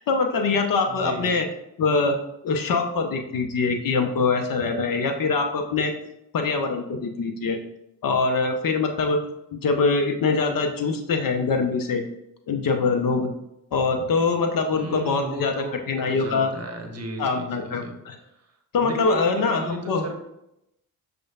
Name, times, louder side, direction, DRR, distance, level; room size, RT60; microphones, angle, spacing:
voice 1, 0.0-1.5 1.8-2.2 2.4-5.9 6.3-7.6 8.0-9.2 9.5-12.0 12.5-13.3 13.7-16.5 17.2-18.2 18.7-20.0, left 4 dB, 50° left, 5 dB, 0.7 m, -23 dB
voice 2, 0.9-1.4 14.7-17.9 18.8-20.2, right 2 dB, 35° right, 3 dB, 0.9 m, -35 dB
6.2 x 2.3 x 2.4 m, 0.83 s
hypercardioid pair, 40°, 44 cm